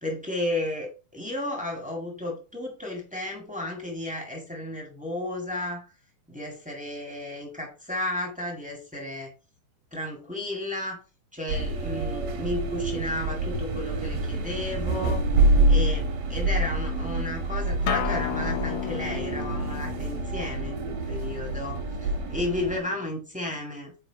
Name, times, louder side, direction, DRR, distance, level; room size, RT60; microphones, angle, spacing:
voice 1, 0.0-5.8 6.3-9.3 9.9-11.0 11.3-15.2 15.7-23.9, left 1 dB, 5° right, 0 dB, 0.6 m, -33 dB
sound 1, 11.5-22.8, right 2 dB, 80° right, 3.5 m, -27 dB
Acoustic guitar, 17.9-23.1, left 14 dB, 80° left, 1.9 m, -35 dB
6.9 x 4.8 x 4.8 m, 0.33 s
omnidirectional pair, 4.0 m